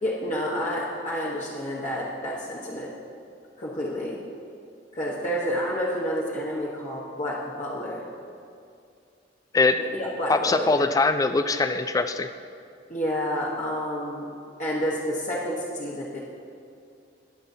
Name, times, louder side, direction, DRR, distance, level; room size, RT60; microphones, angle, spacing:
voice 1, 0.0-2.9 3.6-4.2 4.9-8.0 9.8-10.9 12.9-14.3 14.6-16.2, equal, 45° left, -6 dB, 1.1 m, -29 dB
voice 2, 10.3-12.3, left 3 dB, 20° left, 10 dB, 0.3 m, -22 dB
19.5 x 7.0 x 2.7 m, 2.4 s
head